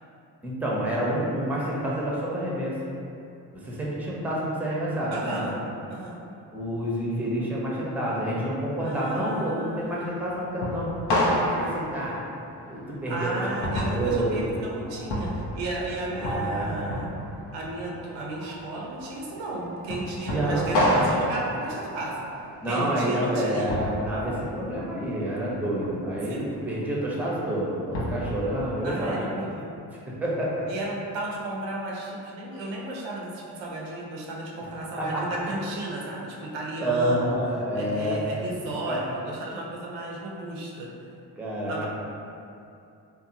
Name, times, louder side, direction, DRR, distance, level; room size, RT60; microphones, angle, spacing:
voice 1, 0.4-2.8 3.5-5.5 6.5-10.9 11.3-12.2 12.7-14.6 16.1-16.7 20.3-21.2 22.6-29.2 30.1-30.6 35.0-35.4 36.8-38.2 38.9-39.1 41.4-41.9, right 1 dB, 5° right, -5 dB, 0.6 m, -28 dB
voice 2, 5.1-5.5 5.9-6.2 8.8-10.2 13.1-17.1 17.5-22.2 22.7-23.7 26.3-26.4 28.8-29.7 30.7-37.3 37.7-40.9 41.7-41.9, right 2 dB, 85° right, -2 dB, 0.5 m, -34 dB
sound 1, 9.8-28.3, equal, 70° left, 0.6 m, -31 dB
2.7 x 2.1 x 2.6 m, 2.6 s
supercardioid pair, 50°, 44 cm